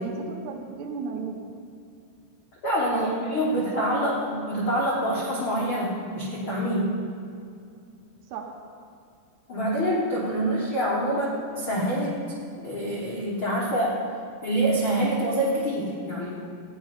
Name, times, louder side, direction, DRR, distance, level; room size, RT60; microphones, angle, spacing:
voice 1, 0.0-1.6 2.9-3.2 3.5-4.1 8.3-8.5 11.1-11.3, right 5 dB, 75° right, 0 dB, 3.0 m, -35 dB
voice 2, 2.6-7.0 9.5-12.2 12.6-14.0 14.4-16.4, right 1 dB, 90° left, -5 dB, 1.1 m, -26 dB
15.0 x 5.4 x 9.6 m, 2.4 s
omnidirectional pair, 5.1 m